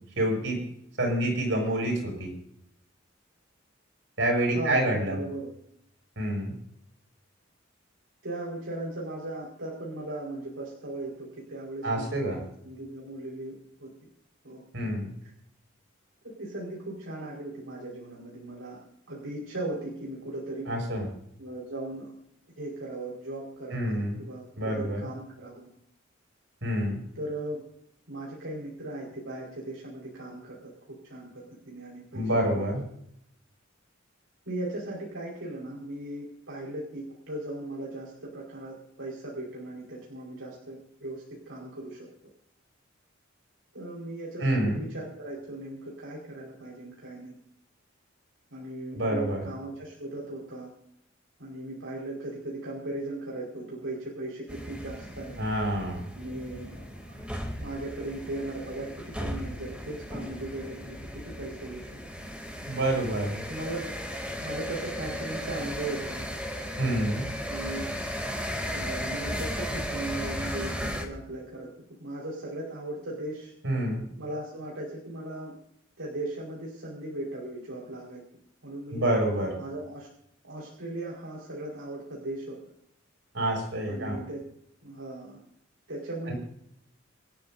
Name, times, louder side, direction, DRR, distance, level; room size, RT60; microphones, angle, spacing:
voice 1, 0.2-0.6 1.0-2.3 4.2-5.2 6.2-6.5 11.8-12.4 14.7-15.1 20.7-21.1 23.7-24.2 24.6-25.0 26.6-27.0 32.1-32.8 44.4-44.8 48.9-49.4 55.4-56.1 62.6-63.4 66.8-67.3 73.6-74.1 78.9-79.5 83.3-84.2 86.3-86.4, right 1 dB, 65° right, 1 dB, 7.1 m, -27 dB
voice 2, 4.5-5.5 8.2-13.5 13.8-13.9 14.4-14.6 16.4-18.8 19.1-20.7 21.4-22.1 22.6-25.7 27.1-27.6 28.1-30.6 31.0-32.2 32.5-32.7 34.5-42.1 43.7-47.3 48.5-50.7 51.4-55.4 56.1-56.8 57.5-58.9 59.2-61.9 63.5-64.0 64.4-66.2 67.5-67.9 68.7-71.7 72.0-73.5 74.2-75.5 76.0-78.2 78.6-79.0 79.6-80.1 80.4-82.6 83.9-84.4 84.8-85.4 85.9-86.3, right 1 dB, 85° right, -4 dB, 4.8 m, -38 dB
sound 1, 54.5-71.0, equal, 5° right, 2.8 m, -36 dB
27.0 x 12.5 x 2.7 m, 0.71 s
head